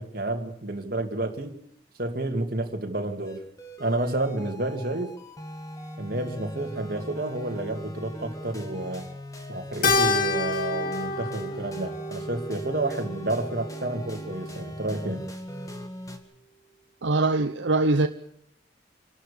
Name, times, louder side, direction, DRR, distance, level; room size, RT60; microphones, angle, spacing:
voice 1, 0.0-1.6 2.0-3.4 3.8-5.1 6.0-9.1 9.5-15.3, right 2 dB, 50° right, 2.3 m, -30 dB
sound 1, 3.2-16.2, left 1 dB, 20° left, 2.1 m, -40 dB
Keyboard (musical), 9.8-14.4, left 3 dB, 50° left, 1.9 m, -29 dB
voice 2, 17.0-18.1, right 2 dB, 75° right, 0.8 m, -22 dB
26.5 x 12.0 x 8.4 m
head